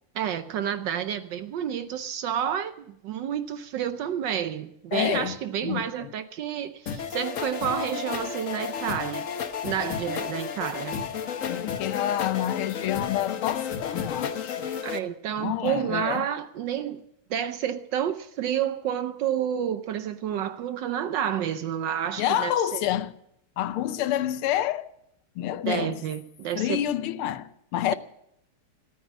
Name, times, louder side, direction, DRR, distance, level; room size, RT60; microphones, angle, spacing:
voice 1, 0.1-9.3 9.6-11.1 14.8-17.0 17.3-22.8 25.6-26.8, right 9 dB, 70° right, 1.2 m, -30 dB
voice 2, 4.9-5.4 5.6-6.1 11.5-14.7 15.4-16.3 22.2-23.2 23.6-24.9 25.4-26.0 26.5-27.9, left 12 dB, 80° left, 1.6 m, -28 dB
sound 1, 6.9-15.0, left 7 dB, 50° left, 1.1 m, -32 dB
13.5 x 13.5 x 7.2 m
omnidirectional pair, 2.4 m